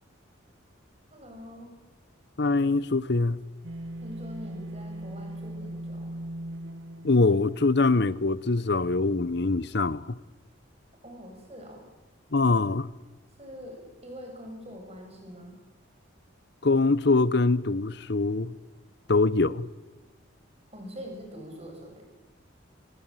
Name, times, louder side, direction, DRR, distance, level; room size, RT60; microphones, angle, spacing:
voice 1, 1.1-1.8 4.0-6.1 11.0-11.9 13.4-15.6 20.7-22.0, equal, 30° right, 7.5 m, -44 dB
voice 2, 2.4-3.4 7.0-10.2 12.3-12.9 16.6-18.5 19.1-19.7, left 3 dB, 55° left, 0.8 m, -23 dB
sound 1, 3.6-7.9, right 1 dB, 70° right, 1.2 m, -39 dB
26.0 x 20.5 x 9.1 m
head